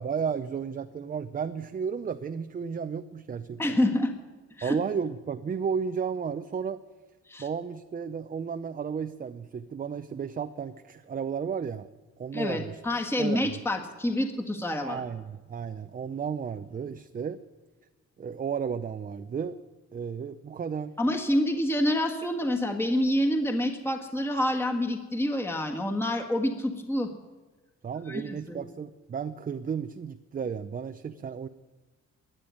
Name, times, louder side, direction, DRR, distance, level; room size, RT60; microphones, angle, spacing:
voice 1, 0.0-3.8 4.6-6.8 7.4-11.9 12.2-12.8 13.2-13.6 14.8-17.4 18.2-19.6 19.9-21.0 27.8-31.5, right 6 dB, 30° right, 10 dB, 0.5 m, -33 dB
voice 2, 3.6-4.1 4.6-4.8 7.3-7.4 12.3-15.0 21.0-27.1 28.1-28.6, left 1 dB, 10° left, 3 dB, 1.5 m, -27 dB
13.5 x 9.0 x 9.3 m, 1.3 s
cardioid pair, 90°, 30 cm